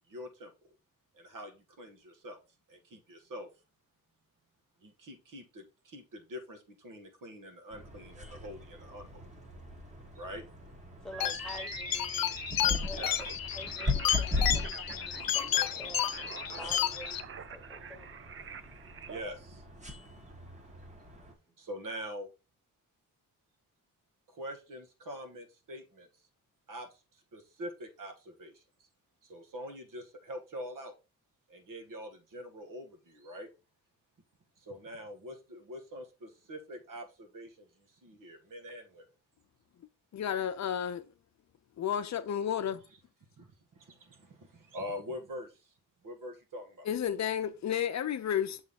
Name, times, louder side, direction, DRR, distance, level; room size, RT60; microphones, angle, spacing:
voice 1, 0.1-0.7 1.1-2.4 2.7-3.5 4.8-9.2 10.1-10.4 12.9-13.2 19.1-19.6 21.6-22.3 24.3-26.1 26.7-27.0 27.3-28.6 29.2-30.9 31.5-33.5 34.6-39.0 43.4-45.6 46.0-46.9, equal, 65° right, 1.7 m, -44 dB
sound 1, 7.7-21.3, left 2 dB, 20° right, 1.4 m, -39 dB
voice 2, 11.0-13.0 13.5-18.1 21.1-21.3, equal, ahead, 1.3 m, -48 dB
sound 2, 11.1-19.2, right 7 dB, 40° right, 0.5 m, -46 dB
sound 3, 11.2-17.2, left 11 dB, 90° left, 0.7 m, -32 dB
voice 3, 40.1-41.0 41.8-42.8 46.9-48.6, left 9 dB, 55° left, 0.7 m, -32 dB
7.2 x 3.7 x 4.2 m
wide cardioid pair, 160°, 34 cm